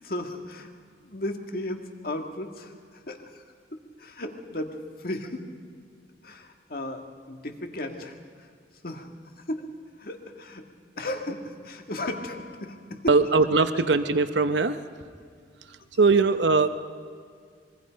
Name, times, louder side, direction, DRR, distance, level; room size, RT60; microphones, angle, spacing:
voice 1, 0.0-0.7 1.0-3.4 3.7-5.4 6.2-8.5 8.8-9.1 9.4-9.7 10.0-10.7 11.0-13.2, left 1 dB, 55° left, 4 dB, 2.0 m, -35 dB
voice 2, 13.1-14.8 16.0-16.7, right 4 dB, 80° right, 10 dB, 0.9 m, -20 dB
25.5 x 22.5 x 5.2 m, 2.1 s
head